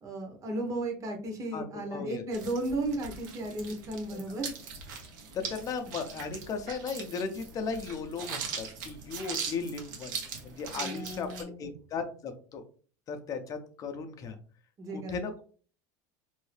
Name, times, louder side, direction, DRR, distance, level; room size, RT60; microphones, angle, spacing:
voice 1, 0.0-4.5 10.7-11.7 14.8-15.2, right 2 dB, 35° right, 3 dB, 1.0 m, -35 dB
voice 2, 1.5-2.2 5.3-12.6 13.1-14.4 14.9-15.4, left 5 dB, 35° left, 6 dB, 0.6 m, -36 dB
sound 1, 2.3-11.4, right 5 dB, 85° right, 0.9 m, -41 dB
2.7 x 2.6 x 3.2 m, 0.41 s
supercardioid pair, 120°, 10 cm